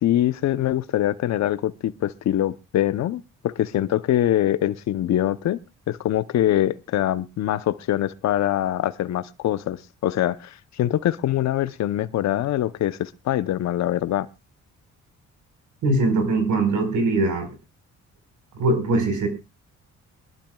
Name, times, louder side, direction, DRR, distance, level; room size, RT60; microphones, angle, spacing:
voice 1, 0.0-5.6 5.9-14.3, left 12 dB, 65° left, 14 dB, 0.8 m, -23 dB
voice 2, 15.8-17.5 18.6-19.3, right 2 dB, 75° right, 7 dB, 4.5 m, -21 dB
23.5 x 12.0 x 2.3 m, 0.26 s
cardioid pair, 90°, 30 cm